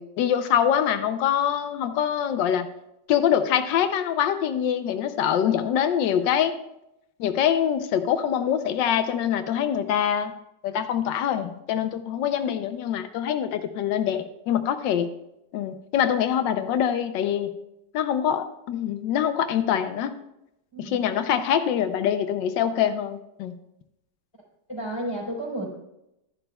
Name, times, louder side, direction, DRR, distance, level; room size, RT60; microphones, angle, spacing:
voice 1, 0.0-2.7 3.1-6.5 7.2-10.3 10.6-15.1 15.5-17.5 17.9-20.1 20.8-23.6, left 9 dB, 85° left, 9 dB, 1.3 m, -24 dB
voice 2, 20.7-21.0 24.7-25.7, right 1 dB, 15° left, -3 dB, 4.0 m, -32 dB
12.5 x 11.0 x 2.3 m, 0.85 s
omnidirectional pair, 1.9 m